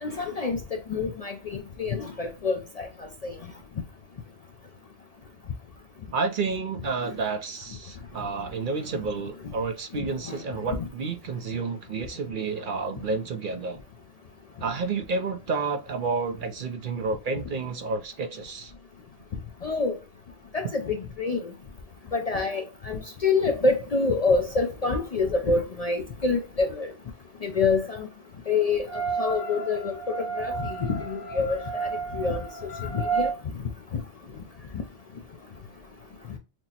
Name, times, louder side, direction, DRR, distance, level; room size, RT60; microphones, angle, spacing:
voice 1, 0.0-2.9 3.2-3.3 10.0-10.4 10.7-10.8 19.6-19.9 20.5-21.4 22.1-26.9 27.4-28.1 28.5-31.9 32.1-32.5 32.9-33.3, left 4 dB, 50° left, 0.5 m, -27 dB
voice 2, 6.1-13.8 14.6-18.7, right 4 dB, 55° right, 0.7 m, -30 dB
sound 1, 28.9-33.3, right 5 dB, 75° left, 1.3 m, -32 dB
6.0 x 2.0 x 2.8 m
omnidirectional pair, 1.1 m